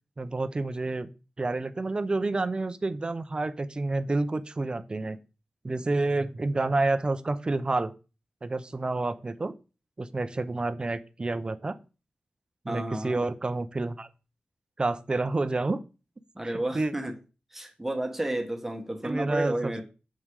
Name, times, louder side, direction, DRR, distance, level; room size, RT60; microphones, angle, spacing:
voice 1, 0.2-1.1 1.4-5.2 5.6-7.9 8.4-9.5 10.0-11.8 12.6-14.1 14.8-15.8 16.4-16.9 19.0-19.8, right 2 dB, 30° right, 11 dB, 0.6 m, -29 dB
voice 2, 12.7-13.2 16.3-17.1 17.5-19.8, right 1 dB, 10° right, 4 dB, 1.2 m, -31 dB
7.5 x 5.5 x 4.8 m, 0.32 s
wide cardioid pair, 140°, 3 cm